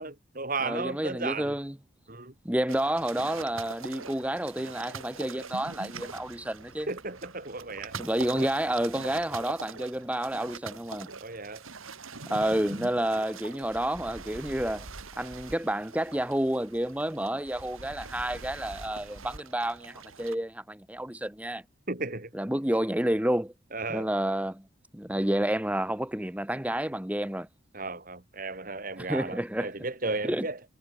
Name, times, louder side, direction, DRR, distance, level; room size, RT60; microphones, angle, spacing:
voice 1, 0.0-1.5 2.1-2.3 6.9-8.0 11.2-11.7 21.9-22.3 23.7-24.1 27.7-30.6, right 3 dB, 40° right, 2.4 m, -34 dB
voice 2, 0.6-1.7 2.4-6.9 8.0-11.1 12.3-14.9 15.2-21.6 22.3-23.5 23.9-24.6 24.9-27.5 29.0-29.7 30.3-30.4, right 1 dB, 5° right, 0.9 m, -30 dB
sound 1, 2.7-20.4, right 4 dB, 85° right, 2.8 m, -43 dB
head